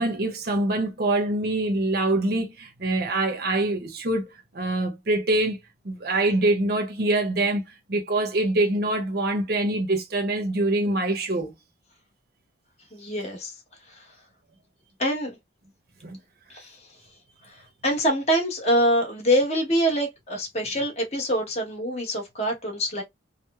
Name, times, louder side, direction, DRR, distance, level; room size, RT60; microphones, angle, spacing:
voice 1, 0.0-5.6 5.8-7.6 7.9-11.5 16.0-16.2, right 2 dB, 55° right, 0.7 m, -24 dB
voice 2, 12.9-13.6 13.9-14.0 15.0-15.4 16.5-16.8 17.4-17.5 17.8-23.0, equal, 35° left, 1.0 m, -25 dB
3.0 x 2.0 x 2.2 m
head